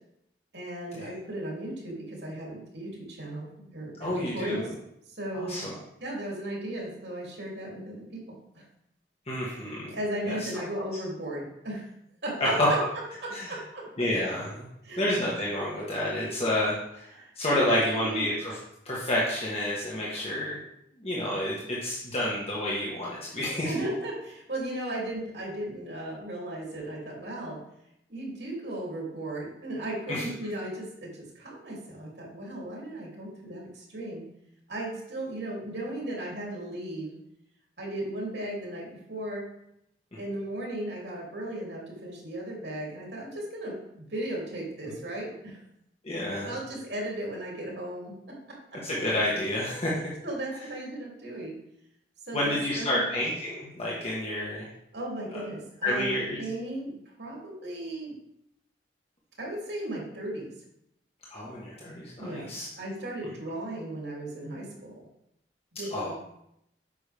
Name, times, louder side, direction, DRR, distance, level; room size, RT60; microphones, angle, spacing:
voice 1, 0.5-4.7 5.1-5.6 6.0-8.6 9.9-11.9 12.2-12.8 13.2-13.9 14.8-15.0 17.2-18.2 23.6-27.6 28.1-34.3 34.7-37.1 37.8-39.4 40.2-45.6 46.4-48.4 48.7-48.8 50.2-51.6 52.3-53.1 54.9-58.1 59.4-60.5 62.2-65.0 65.7-66.1, right 1 dB, 70° right, -3 dB, 3.0 m, -36 dB
voice 2, 4.0-4.7 5.3-5.7 9.3-10.0 10.3-10.5 10.7-10.8 12.4-12.7 13.3-13.5 14.0-14.7 15.0-17.0 17.3-18.6 18.8-20.6 21.0-23.7 30.1-30.2 46.0-46.5 48.8-49.9 52.3-54.7 55.3-55.4 55.8-56.4 61.3-62.7 65.9-66.1, left 1 dB, 35° left, -5 dB, 1.5 m, -29 dB
8.8 x 6.1 x 3.5 m, 0.79 s
head